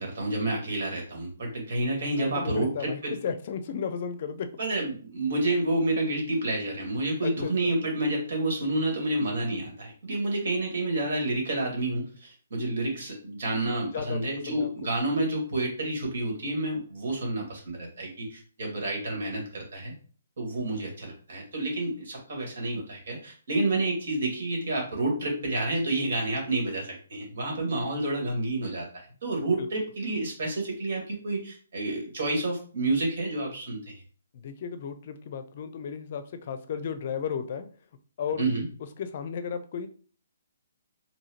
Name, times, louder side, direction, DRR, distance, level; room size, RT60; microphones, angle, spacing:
voice 1, 0.0-3.2 4.6-19.9 20.4-33.8 38.4-38.7, right 2 dB, 60° right, 0 dB, 2.1 m, -29 dB
voice 2, 2.2-4.5 7.2-7.5 13.9-14.7 29.6-29.7 34.3-37.7 38.2-38.5 39.0-39.9, left 7 dB, 50° left, 10 dB, 0.5 m, -34 dB
4.8 x 2.7 x 3.0 m, 0.42 s
hypercardioid pair, 140°, 0 cm